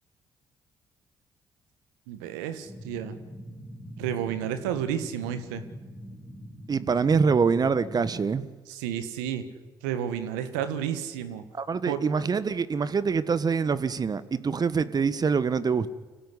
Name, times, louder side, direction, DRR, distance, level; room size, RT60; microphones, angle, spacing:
voice 1, 2.1-3.2 4.0-5.6 8.7-9.4 9.8-11.4 11.9-12.0, right 9 dB, 85° right, 10 dB, 1.7 m, -31 dB
sound 1, 2.6-8.1, equal, 15° left, 3.8 m, -43 dB
voice 2, 6.7-8.5 11.5-15.9, right 5 dB, 45° right, 15 dB, 1.6 m, -25 dB
25.0 x 16.5 x 9.9 m, 1.4 s
hypercardioid pair, 50°, 10 cm